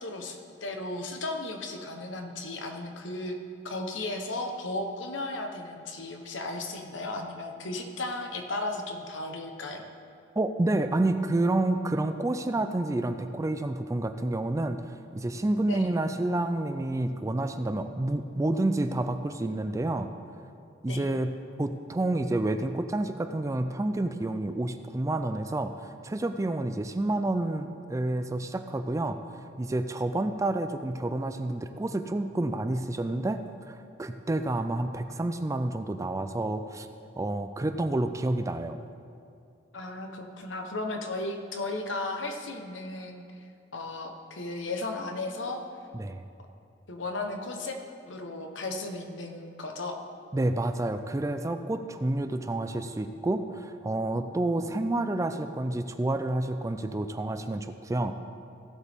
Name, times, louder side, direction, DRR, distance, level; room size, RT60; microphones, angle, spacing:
voice 1, 0.0-3.4 3.6-9.8 15.7-15.9 20.9-21.1 30.2-30.4 39.7-45.6 46.9-47.8 48.1-50.0, left 2 dB, 75° left, 4 dB, 1.1 m, -35 dB
voice 2, 10.4-20.1 20.8-21.3 21.6-29.2 29.6-33.4 33.7-36.9 37.2-38.9 45.9-46.2 50.3-58.2, right 2 dB, 15° right, 9 dB, 0.4 m, -29 dB
15.5 x 8.1 x 3.6 m, 2.4 s
head